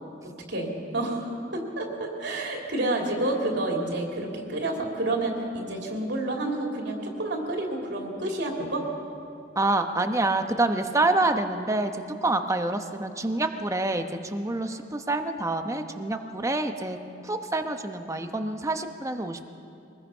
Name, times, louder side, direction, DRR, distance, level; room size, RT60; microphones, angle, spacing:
voice 1, 0.5-8.9, right 2 dB, 65° right, 0 dB, 3.1 m, -29 dB
voice 2, 9.6-17.0 17.2-19.5, right 2 dB, 15° right, 6 dB, 1.0 m, -27 dB
23.5 x 20.0 x 5.6 m, 2.5 s
head